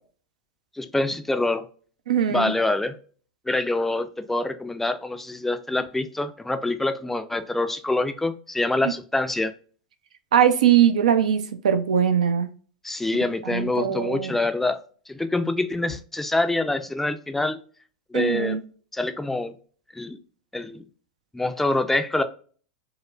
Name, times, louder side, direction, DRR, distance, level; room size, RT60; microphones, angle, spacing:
voice 1, 0.7-1.7 2.3-3.0 3.5-9.5 12.8-17.6 18.1-18.6 18.9-19.5 19.9-20.2 20.5-20.8 21.3-22.2, left 2 dB, 5° left, 8 dB, 0.4 m, -25 dB
voice 2, 2.1-2.5 8.8-8.9 10.3-12.5 13.5-14.3 18.1-18.6, right 9 dB, 75° right, 9 dB, 0.5 m, -21 dB
4.7 x 2.1 x 2.3 m, 0.42 s
hypercardioid pair, 95°, 4 cm